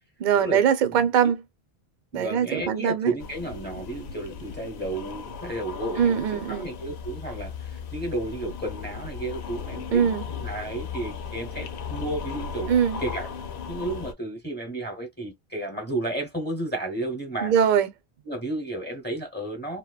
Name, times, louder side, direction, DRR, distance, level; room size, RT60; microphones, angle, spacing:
voice 1, 0.2-1.4 2.1-3.1 6.0-6.7 9.9-10.2 12.7-13.0 17.4-17.9, right 8 dB, 55° right, 0.6 m, -22 dB
voice 2, 2.1-12.7 13.0-13.3 13.7-17.5 18.3-19.8, right 2 dB, 10° left, 0.8 m, -32 dB
sound 1, 3.2-14.1, left 6 dB, 85° left, 0.9 m, -36 dB
2.9 x 2.1 x 2.2 m
omnidirectional pair, 1.1 m